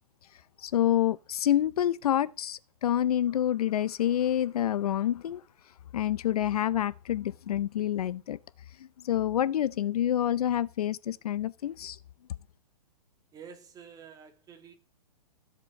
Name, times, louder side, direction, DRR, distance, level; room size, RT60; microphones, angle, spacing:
voice 1, 0.6-5.4 5.9-8.4 8.8-12.0, left 11 dB, 65° left, 0.7 m, -27 dB
voice 2, 13.3-14.7, right 7 dB, 20° right, 2.0 m, -49 dB
15.0 x 7.5 x 5.3 m
hypercardioid pair, 135°, 20 cm